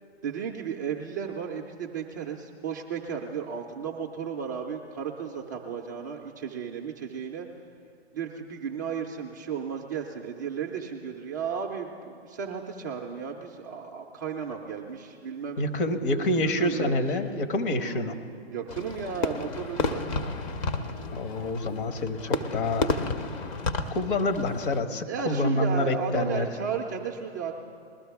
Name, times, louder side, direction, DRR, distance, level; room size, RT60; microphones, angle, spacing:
voice 1, 0.2-7.5 8.1-15.6 16.6-17.2 17.7-18.2 18.5-20.2 25.1-27.5, right 7 dB, 20° right, 0 dB, 0.3 m, -34 dB
voice 2, 15.6-18.1 21.1-22.9 23.9-26.5, left 1 dB, 50° left, 6 dB, 1.2 m, -27 dB
Fireworks, 18.7-24.8, left 3 dB, 30° left, 0.6 m, -32 dB
21.0 x 12.5 x 3.5 m, 2.4 s
hypercardioid pair, 130°, 33 cm